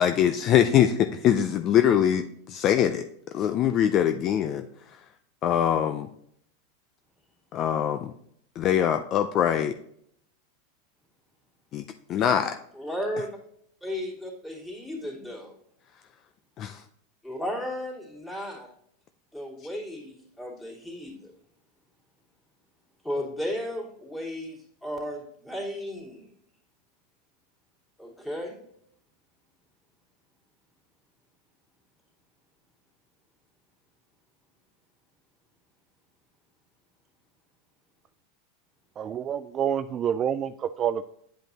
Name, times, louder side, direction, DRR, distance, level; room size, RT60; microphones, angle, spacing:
voice 1, 0.0-3.0 3.3-4.6 5.4-6.1 7.5-8.1 8.6-9.7 11.7-11.8 12.1-12.6 16.6-16.8, left 10 dB, 40° left, 8 dB, 0.5 m, -23 dB
voice 2, 12.8-13.3 13.8-15.5 17.2-18.7 19.3-21.3 23.0-26.3 28.0-28.6, left 1 dB, 10° left, -4 dB, 2.9 m, -34 dB
voice 3, 39.0-41.0, right 9 dB, 35° right, 11 dB, 0.3 m, -28 dB
9.1 x 5.1 x 2.8 m, 0.68 s
hypercardioid pair, 110°, 0 cm